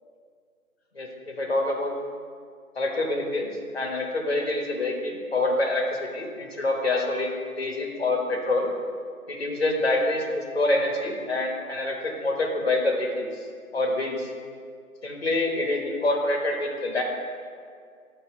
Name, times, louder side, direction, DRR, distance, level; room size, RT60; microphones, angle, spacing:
voice 1, 1.0-1.9 2.8-5.9 6.1-8.7 9.3-13.3 13.7-14.3 15.0-17.0, left 2 dB, 45° left, 1 dB, 0.8 m, -26 dB
7.5 x 2.7 x 5.5 m, 2.1 s
figure-of-eight pair, 170°, 43 cm